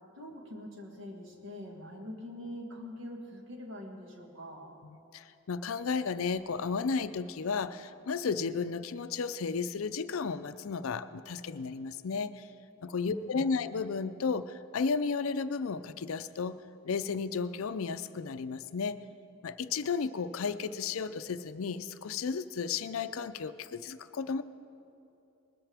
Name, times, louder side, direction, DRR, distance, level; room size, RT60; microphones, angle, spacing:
voice 1, 0.2-4.7 13.1-13.6, left 1 dB, 65° right, 1 dB, 1.8 m, -44 dB
voice 2, 4.9-12.5 12.8-16.5 16.8-19.0 19.4-24.4, left 5 dB, 75° left, 13 dB, 0.5 m, -33 dB
20.5 x 13.0 x 3.5 m, 2.8 s
head